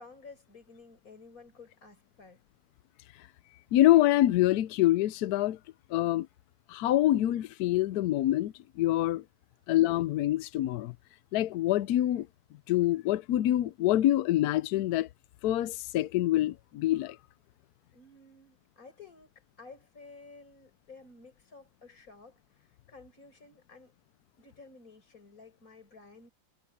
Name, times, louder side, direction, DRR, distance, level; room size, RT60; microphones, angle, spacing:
voice 1, 0.0-2.4 17.9-23.9 24.4-26.3, left 4 dB, 45° left, 5.4 m, -53 dB
voice 2, 3.7-5.6 5.9-6.3 6.7-9.2 9.7-10.9 11.3-12.3 12.7-15.1 15.4-17.2, left 14 dB, 75° left, 0.9 m, -26 dB
omnidirectional pair, 2.1 m